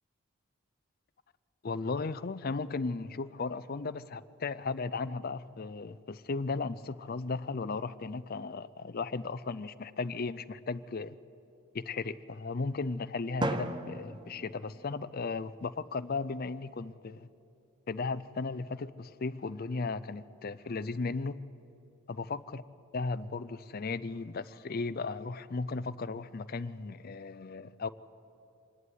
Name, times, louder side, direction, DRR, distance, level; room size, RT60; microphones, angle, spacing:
voice 1, 1.6-11.2 11.7-17.3 17.9-21.4 22.1-22.6 22.9-27.9, left 4 dB, 40° left, 0.5 m, -36 dB
Drum, 13.4-15.4, right 1 dB, 20° right, 0.6 m, -36 dB
26.0 x 11.0 x 9.5 m
head